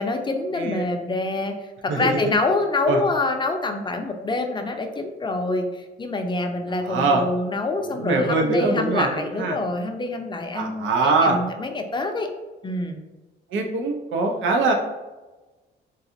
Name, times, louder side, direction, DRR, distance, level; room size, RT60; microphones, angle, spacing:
voice 1, 0.0-12.3 12.6-13.0, left 2 dB, 25° left, 4 dB, 0.5 m, -26 dB
voice 2, 0.5-0.8 1.9-2.2 2.9-3.0 6.8-7.2 7.8-9.5 10.5-11.4 13.5-14.7, right 3 dB, 75° right, 3 dB, 0.6 m, -22 dB
3.9 x 2.4 x 2.7 m, 1.2 s
cardioid pair, 90°, 20 cm